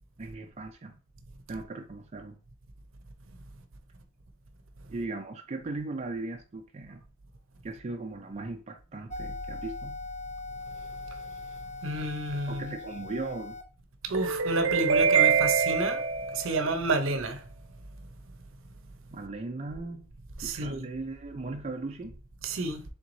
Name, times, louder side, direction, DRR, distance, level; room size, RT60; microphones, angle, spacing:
voice 1, 0.2-1.0 1.5-2.4 4.9-7.0 7.6-10.0 12.5-13.6 19.1-20.1 20.4-22.1, right 3 dB, 30° right, 0.4 m, -38 dB
sound 1, 9.1-13.6, left 2 dB, 35° left, 0.8 m, -40 dB
voice 2, 11.8-12.7 14.0-17.5 20.4-20.9 22.4-22.8, right 4 dB, 70° right, 0.7 m, -26 dB
3.6 x 3.0 x 3.8 m
head